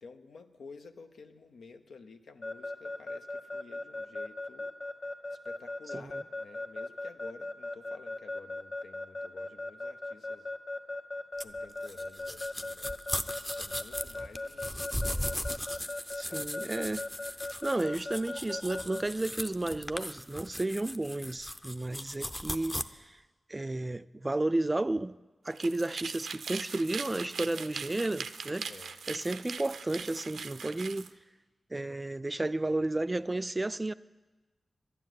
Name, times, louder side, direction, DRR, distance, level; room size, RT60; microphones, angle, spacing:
voice 1, 0.0-4.7 5.3-10.5 11.4-13.1 13.5-16.5 28.7-29.0, left 4 dB, 85° left, 0.8 m, -52 dB
Keyboard (musical) / Alarm, 2.4-19.0, left 2 dB, 60° left, 1.1 m, -37 dB
sound 1, 11.4-22.8, equal, 10° left, 0.6 m, -38 dB
voice 2, 16.1-17.0 17.6-23.2 23.5-25.2 25.4-28.7 29.1-31.1 31.7-33.9, right 2 dB, 25° right, 0.4 m, -32 dB
sound 2, 25.5-31.1, right 6 dB, 90° right, 0.5 m, -41 dB
11.5 x 9.8 x 9.2 m
cardioid pair, 60°, 0 cm